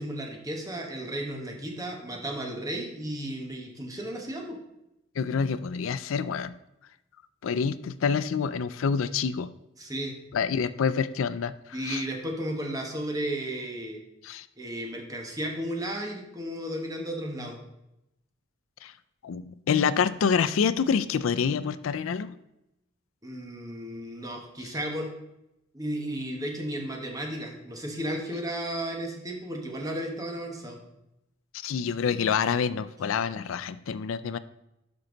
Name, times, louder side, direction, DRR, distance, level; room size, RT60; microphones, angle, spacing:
voice 1, 0.0-4.6 9.8-10.1 11.7-14.0 14.6-17.6 23.2-25.1 25.7-30.8, right 1 dB, 20° right, 1 dB, 1.3 m, -34 dB
voice 2, 5.2-6.6 7.4-9.5 10.3-12.0 14.2-14.5 18.8-18.9 19.2-22.4 31.6-34.4, left 6 dB, 85° left, 14 dB, 0.4 m, -27 dB
12.0 x 4.4 x 3.9 m, 0.87 s
head